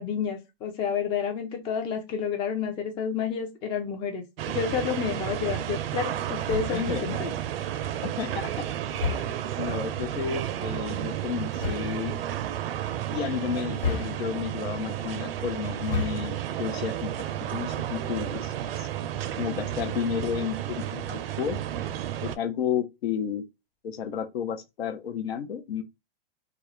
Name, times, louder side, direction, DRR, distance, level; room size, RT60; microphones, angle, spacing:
voice 1, 0.0-7.3, left 6 dB, 15° left, 0.3 m, -30 dB
sound 1, 4.4-22.4, right 11 dB, 70° right, 0.4 m, -32 dB
sound 2, 6.4-7.0 8.9-9.6 11.5-12.0 13.8-14.6 15.7-16.4, left 4 dB, 65° left, 1.2 m, -32 dB
voice 2, 6.7-7.3 8.0-8.6 9.1-9.2 9.6-12.2 13.1-17.1 17.5-18.9 19.4-21.6 22.2-23.4 23.8-25.8, left 8 dB, 80° left, 0.6 m, -32 dB
2.3 x 2.0 x 2.9 m
hypercardioid pair, 135°, 30 cm